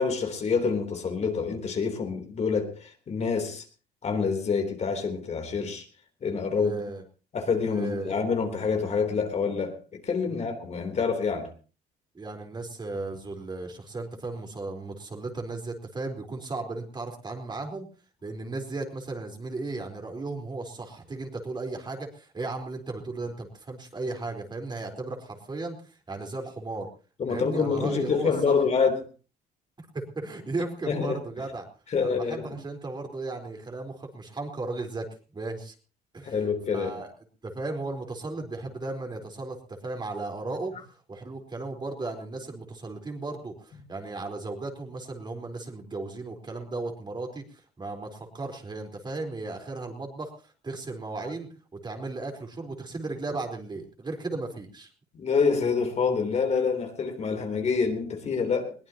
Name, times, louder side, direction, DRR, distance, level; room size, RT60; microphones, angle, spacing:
voice 1, 0.0-3.6 4.0-5.9 6.2-6.8 7.3-11.5 27.2-29.0 30.8-31.2 31.9-32.6 36.2-37.0 55.1-58.7, left 5 dB, 40° left, 5 dB, 3.4 m, -27 dB
voice 2, 6.5-7.0 7.7-8.1 10.3-10.5 12.1-17.9 18.2-25.8 26.1-26.9 27.3-28.5 29.8-31.7 32.0-35.1 35.3-35.7 36.1-36.4 36.7-37.1 37.4-40.7 41.1-54.9, right 3 dB, 25° right, 3 dB, 4.2 m, -35 dB
21.5 x 18.0 x 2.9 m, 0.36 s
cardioid pair, 110°, 17 cm